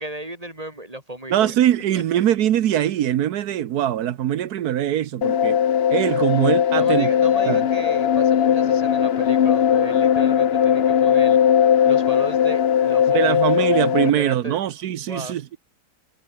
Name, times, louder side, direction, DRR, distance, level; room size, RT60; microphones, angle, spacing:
voice 1, 0.0-1.5 1.9-2.3 6.8-11.4 11.8-13.7 14.0-14.6 15.1-15.4, right 1 dB, 25° right, 5.8 m, -35 dB
voice 2, 1.3-5.6 5.9-7.1 7.5-7.7 13.1-15.6, right 11 dB, 85° right, 1.4 m, -22 dB
sound 1, 5.2-14.1, left 9 dB, 50° left, 0.9 m, -18 dB
omnidirectional pair, 1.6 m